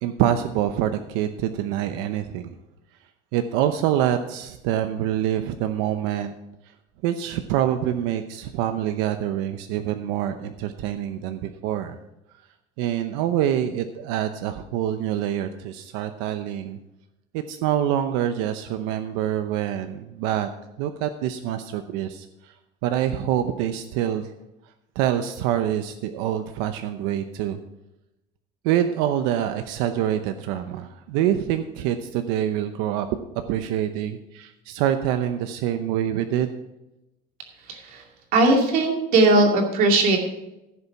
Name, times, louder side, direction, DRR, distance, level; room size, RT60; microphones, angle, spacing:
voice 1, 0.0-2.5 3.3-6.3 7.0-12.0 12.8-16.8 17.3-20.5 20.8-22.5 22.8-24.3 24.9-27.6 28.6-33.1 33.5-36.5, right 11 dB, 85° right, 8 dB, 0.8 m, -26 dB
voice 2, 37.7-38.0 38.3-40.2, right 2 dB, 45° right, 1 dB, 2.5 m, -18 dB
15.5 x 6.9 x 4.7 m, 0.92 s
cardioid pair, 180°, 20 cm